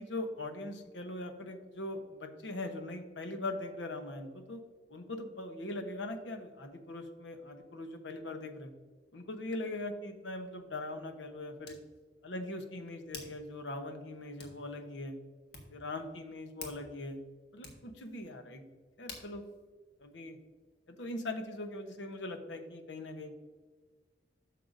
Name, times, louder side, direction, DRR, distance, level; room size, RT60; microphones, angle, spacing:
voice 1, 0.0-4.6 4.9-8.7 9.1-11.8 12.2-15.2 15.7-17.2 17.5-18.6 19.0-19.4 20.0-20.4 20.9-23.4, left 2 dB, 85° left, 7 dB, 1.0 m, -41 dB
Hands, 10.0-20.8, left 3 dB, 65° left, 1.6 m, -54 dB
11.0 x 6.6 x 2.6 m, 1.4 s
head